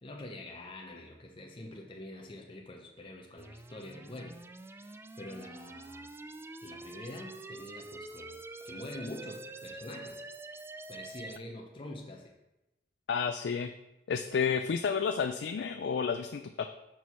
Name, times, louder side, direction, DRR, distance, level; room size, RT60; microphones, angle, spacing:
voice 1, 0.0-4.4 4.6-6.1 6.6-10.2 10.9-12.3, left 1 dB, 30° left, 1 dB, 0.7 m, -45 dB
sound 1, 3.4-11.4, right 2 dB, 15° right, 0.3 m, -46 dB
voice 2, 13.1-13.7 14.1-16.7, left 6 dB, 70° left, 8 dB, 0.4 m, -31 dB
6.1 x 4.7 x 5.5 m, 0.95 s
head